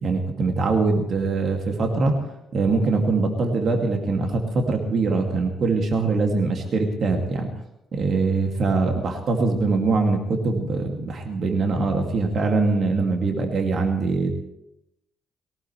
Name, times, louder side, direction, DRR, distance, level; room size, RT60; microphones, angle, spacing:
voice 1, 0.0-2.2 2.5-7.5 7.9-14.3, right 3 dB, 55° right, 3 dB, 2.3 m, -23 dB
19.5 x 18.0 x 3.3 m, 0.83 s
hypercardioid pair, 45°, 0 cm